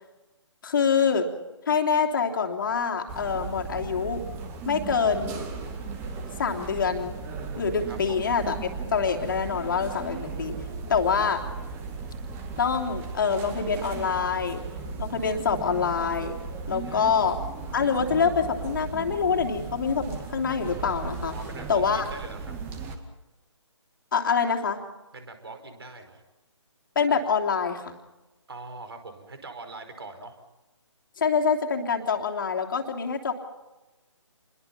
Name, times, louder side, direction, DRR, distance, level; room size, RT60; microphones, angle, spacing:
voice 1, 0.6-1.3 1.7-4.2 4.6-5.4 6.4-7.2 7.6-10.6 10.9-11.4 12.6-14.6 15.0-16.3 16.7-17.4 17.7-21.3 21.7-22.0 24.1-24.8 26.9-27.9 31.2-33.3, left 6 dB, 40° left, 3 dB, 3.1 m, -25 dB
sound 1, 3.1-23.0, right 4 dB, 15° right, 2.0 m, -36 dB
voice 2, 7.9-8.2 16.8-17.2 21.3-22.5 25.1-26.2 28.5-30.4, right 3 dB, 50° right, 8 dB, 5.1 m, -42 dB
28.5 x 22.0 x 5.9 m, 1.0 s
figure-of-eight pair, 150°, 16 cm